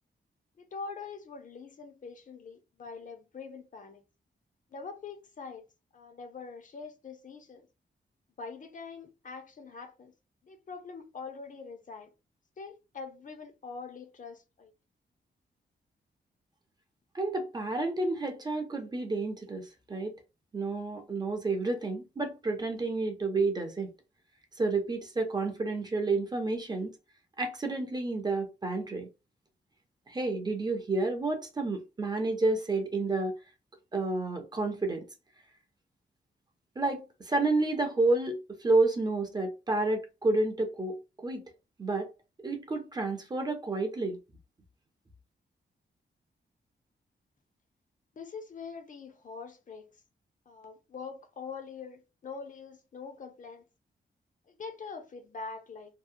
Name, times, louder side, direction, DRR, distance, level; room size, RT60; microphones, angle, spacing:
voice 1, 0.6-4.0 4.7-5.7 5.9-7.7 8.4-10.1 10.4-12.1 12.6-14.7 48.2-49.9 50.5-53.6 54.5-56.0, left 5 dB, 45° left, 0.5 m, -44 dB
voice 2, 17.1-20.1 20.5-23.9 24.6-26.9 27.4-29.1 30.1-33.3 33.9-35.0 36.8-41.0 41.2-41.5 41.8-42.1 42.4-44.2, right 3 dB, 20° right, 0.4 m, -30 dB
2.7 x 2.0 x 2.4 m
wide cardioid pair, 175°, 19 cm